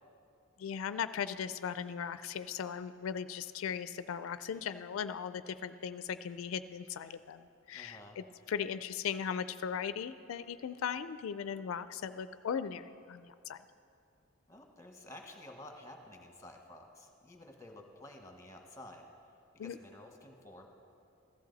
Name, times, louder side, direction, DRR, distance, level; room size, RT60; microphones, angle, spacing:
voice 1, 0.6-13.6 19.6-19.8, left 7 dB, 90° left, 13 dB, 0.4 m, -38 dB
voice 2, 7.7-8.2 14.5-19.1 19.5-20.7, left 1 dB, 15° left, 3 dB, 1.3 m, -52 dB
15.0 x 13.0 x 4.0 m, 2.6 s
head